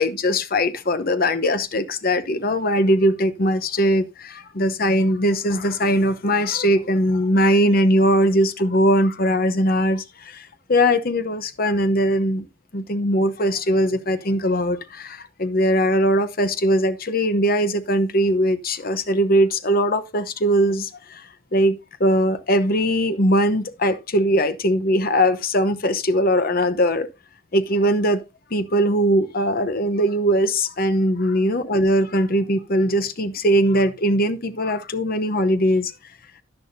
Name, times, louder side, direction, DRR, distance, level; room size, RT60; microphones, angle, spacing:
voice 1, 0.0-12.5 12.7-27.1 27.5-28.2 28.5-35.9, equal, 45° left, 0.9 m, -20 dB
10.5 x 10.5 x 2.7 m
head